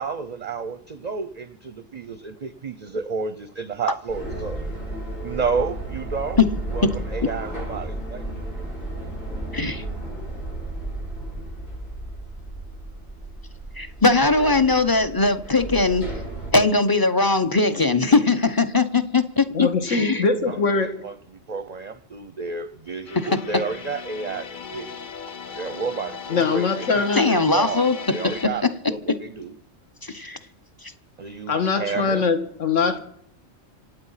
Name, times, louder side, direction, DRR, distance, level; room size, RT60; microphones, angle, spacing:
voice 1, 0.0-4.8 5.2-6.4 6.7-8.4 20.5-24.9 25.5-29.5 31.2-32.3, right 5 dB, 45° right, 0.6 m, -31 dB
sound 1, 4.1-16.5, right 1 dB, 90° left, 6.5 m, -33 dB
voice 2, 9.5-9.8 13.8-16.1 16.5-20.2 27.1-28.0 28.4-28.7 29.1-29.2 30.0-30.4 30.8-30.9, left 3 dB, 20° left, 0.7 m, -20 dB
voice 3, 19.5-21.1 26.3-27.3 31.5-33.0, left 4 dB, 70° left, 2.0 m, -22 dB
sound 2, 23.1-28.5, left 6 dB, 45° left, 0.9 m, -37 dB
26.5 x 8.9 x 5.7 m
omnidirectional pair, 1.3 m